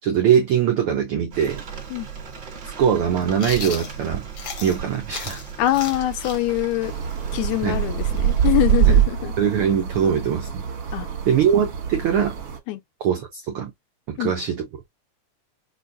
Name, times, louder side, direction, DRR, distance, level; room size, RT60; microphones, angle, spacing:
voice 1, 0.0-1.6 2.8-4.3 4.6-5.4 7.6-7.8 8.9-9.0 9.4-10.7 11.2-12.4 13.0-13.7 14.1-14.7, right 8 dB, 80° right, 1.2 m, -21 dB
Rain, 1.3-9.1, right 9 dB, 45° right, 1.8 m, -25 dB
Chewing mastication, 3.4-4.8 5.1-8.7, left 6 dB, 60° left, 1.3 m, -36 dB
voice 2, 5.6-6.9 7.3-9.3 10.9-11.1 12.7-12.8 14.2-14.3, left 15 dB, 80° left, 1.8 m, -24 dB
sound 1, 6.8-12.6, right 5 dB, 60° right, 1.9 m, -33 dB
6.1 x 2.3 x 2.6 m
omnidirectional pair, 3.5 m